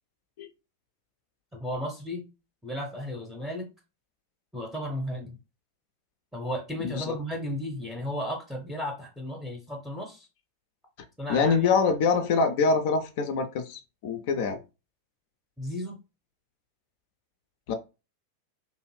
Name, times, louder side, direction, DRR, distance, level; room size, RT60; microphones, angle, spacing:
voice 1, 1.5-2.2 2.6-3.7 4.5-5.4 6.3-10.3 11.2-11.8 15.6-16.0, left 1 dB, ahead, 0.6 m, -34 dB
voice 2, 6.8-7.2 11.3-14.6 17.7-17.8, left 5 dB, 50° left, 0.3 m, -25 dB
2.6 x 2.4 x 3.0 m
figure-of-eight pair, 90°, 0 cm